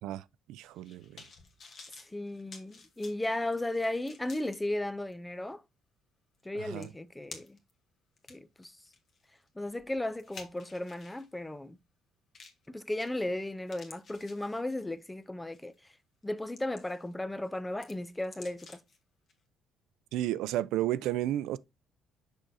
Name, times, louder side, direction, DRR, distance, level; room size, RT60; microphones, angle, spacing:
voice 1, 0.0-1.2 6.5-6.9 20.1-21.6, right 13 dB, 80° right, 0.3 m, -33 dB
sound 1, 0.6-4.6 5.1-5.2 6.4-6.5 6.8-7.7 8.2-11.3 12.3-12.7 13.0-13.4 13.7-15.0 15.5-15.7 16.2-17.1 17.4-19.0 19.3-19.4, left 4 dB, 35° left, 1.1 m, -52 dB
voice 2, 2.1-5.6 6.4-7.6 8.3-8.7 9.6-11.8 12.7-15.7 16.2-18.8, left 1 dB, 5° left, 0.4 m, -35 dB
6.3 x 6.0 x 2.7 m
cardioid pair, 175°, 0 cm